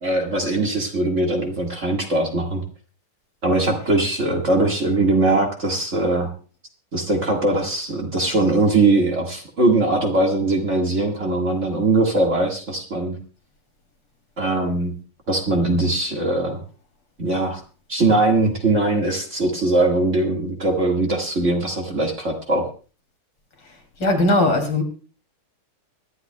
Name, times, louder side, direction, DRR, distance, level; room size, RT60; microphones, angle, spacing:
voice 1, 0.0-2.6 3.4-6.3 6.9-13.2 14.4-14.9 15.3-16.6 17.2-17.6 17.9-22.7, right 2 dB, 35° right, 1 dB, 2.0 m, -21 dB
voice 2, 24.0-24.8, left 2 dB, 65° left, 3 dB, 3.8 m, -18 dB
24.5 x 11.5 x 2.3 m, 0.37 s
omnidirectional pair, 2.3 m